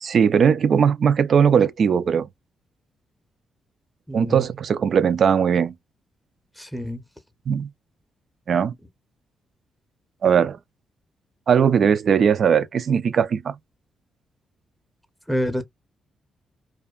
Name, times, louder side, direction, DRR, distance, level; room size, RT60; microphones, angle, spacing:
voice 1, 0.0-2.3 4.1-5.7 7.5-7.7 8.5-8.7 10.2-10.6 11.5-13.6, right 7 dB, 60° right, 0.3 m, -19 dB
voice 2, 4.1-4.5 6.6-7.0 15.3-15.6, equal, ahead, 0.7 m, -27 dB
2.5 x 2.2 x 2.3 m
cardioid pair, 65°, 0 cm